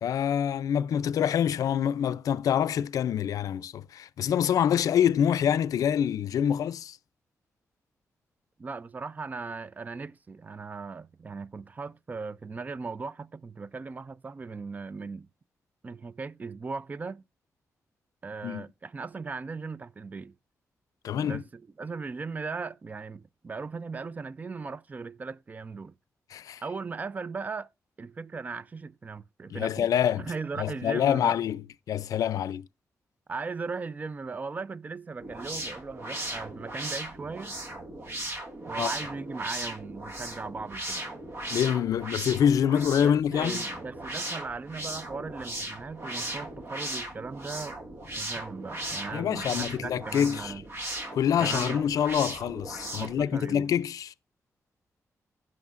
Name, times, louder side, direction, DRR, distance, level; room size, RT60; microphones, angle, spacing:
voice 1, 0.0-7.0 18.4-18.6 21.0-21.4 26.3-26.6 29.5-30.3 30.6-31.6 31.9-32.7 38.8-38.9 41.5-43.7 49.1-50.5 51.1-54.1, left 9 dB, 90° left, 0.4 m, -26 dB
voice 2, 8.6-15.3 15.8-17.2 18.2-20.3 21.2-25.9 26.6-27.7 28.0-29.9 30.2-31.4 32.4-32.5 33.3-37.5 38.6-41.1 43.0-47.8 48.2-50.6 51.4-51.8 52.9-53.7, right 4 dB, 30° right, 0.4 m, -38 dB
sound 1, 35.2-53.2, right 1 dB, 45° right, 1.9 m, -37 dB
16.0 x 6.4 x 2.5 m
wide cardioid pair, 135°, 6 cm